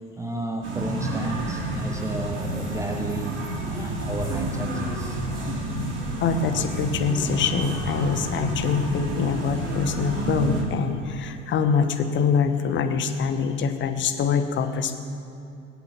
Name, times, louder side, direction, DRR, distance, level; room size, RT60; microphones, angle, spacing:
voice 1, 0.2-5.2, right 2 dB, 5° right, 3 dB, 1.0 m, -32 dB
sound 1, 0.6-10.6, right 1 dB, 30° right, 3.1 m, -29 dB
voice 2, 6.2-15.0, left 6 dB, 30° left, 8 dB, 1.2 m, -24 dB
22.5 x 8.1 x 5.9 m, 2.7 s
figure-of-eight pair, 85°, 40 cm